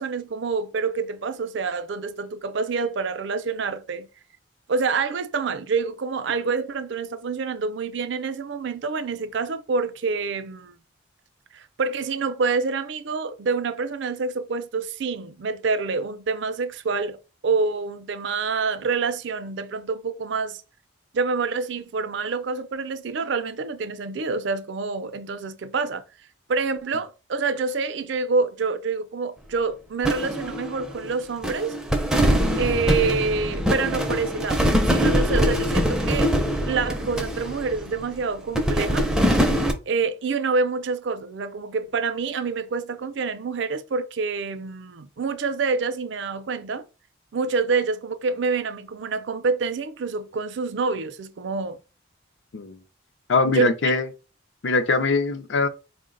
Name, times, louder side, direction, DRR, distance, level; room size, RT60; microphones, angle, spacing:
voice 1, 0.0-4.1 4.7-10.8 11.5-17.2 17.4-20.6 21.1-26.0 26.5-31.7 32.6-36.3 36.6-39.1 39.9-46.8 47.3-51.8 53.5-54.0, right 4 dB, 60° right, 0.4 m, -27 dB
sound 1, 30.0-31.2 31.4-38.1 38.5-39.7, equal, 5° right, 0.4 m, -23 dB
voice 2, 53.3-54.0 54.6-55.7, left 3 dB, 65° left, 0.5 m, -22 dB
4.5 x 2.1 x 3.7 m
head